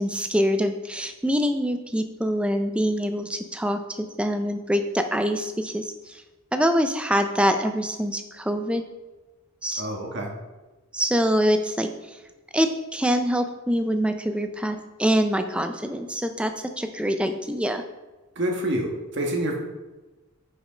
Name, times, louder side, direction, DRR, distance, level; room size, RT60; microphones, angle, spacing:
voice 1, 0.0-6.2 6.5-8.8 9.6-9.9 10.9-12.2 12.5-17.8, equal, 5° right, 7 dB, 0.4 m, -25 dB
voice 2, 9.8-10.3 18.3-19.6, right 1 dB, 55° right, 1 dB, 1.3 m, -27 dB
6.4 x 5.2 x 5.0 m, 1.1 s
head